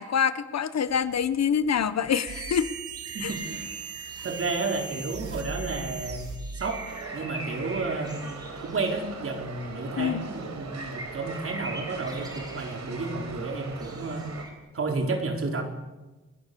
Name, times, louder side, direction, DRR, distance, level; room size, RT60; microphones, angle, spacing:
voice 1, 0.0-2.7 3.2-3.3 10.0-10.2, left 7 dB, 60° left, 13 dB, 1.2 m, -26 dB
sound 1, 0.9-14.5, right 1 dB, 15° right, 5.0 m, -44 dB
sound 2, 2.3-7.1, right 5 dB, 80° right, 3.6 m, -38 dB
voice 2, 3.1-3.7 4.2-6.3 6.5-6.8 7.1-14.3 14.7-15.6, right 3 dB, 45° right, 3 dB, 4.4 m, -31 dB
sound 3, 6.9-14.5, right 4 dB, 65° right, 4.7 m, -41 dB
30.0 x 21.5 x 7.0 m, 1.1 s
wide cardioid pair, 150°, 29 cm